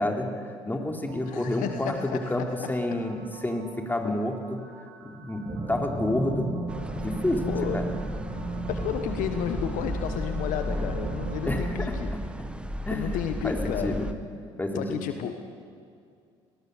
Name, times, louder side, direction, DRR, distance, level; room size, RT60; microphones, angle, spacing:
voice 1, 0.0-2.4 2.7-4.3 5.0-6.5 6.9-7.4 7.7-7.8 11.5-12.0 12.4-12.5 12.9-13.2 13.4-14.1 14.6-15.0, left 1 dB, 10° left, 2 dB, 3.4 m, -29 dB
voice 2, 1.1-2.7 4.0-4.2 7.5-7.9 8.7-12.2 12.9-14.1 14.7-15.4, left 10 dB, 60° left, 7 dB, 1.1 m, -32 dB
sound 1, 1.1-11.7, right 6 dB, 70° right, 3.2 m, -50 dB
sound 2, 5.5-11.6, right 2 dB, 30° right, 5.1 m, -34 dB
sound 3, 6.7-14.1, equal, 5° right, 1.5 m, -34 dB
24.5 x 19.0 x 6.8 m, 2.3 s
figure-of-eight pair, 55°, 15 cm